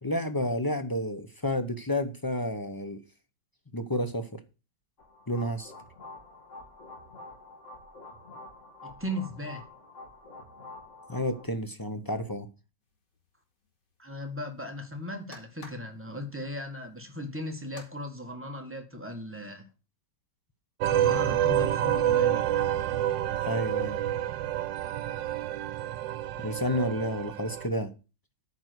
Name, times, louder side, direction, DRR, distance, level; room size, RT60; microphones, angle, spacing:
voice 1, 0.0-3.0 3.7-4.4 5.3-5.7 11.1-12.5 23.4-24.0 26.4-27.9, left 1 dB, 25° left, 0.4 m, -30 dB
sound 1, 5.0-11.4, left 2 dB, 40° left, 2.8 m, -48 dB
voice 2, 8.8-9.7 14.0-19.7 20.8-22.4, left 1 dB, 5° right, 1.7 m, -37 dB
sound 2, 12.8-17.9, left 2 dB, 70° left, 3.4 m, -55 dB
sound 3, 20.8-27.7, right 11 dB, 85° right, 1.4 m, -28 dB
9.2 x 5.3 x 8.0 m
omnidirectional pair, 1.9 m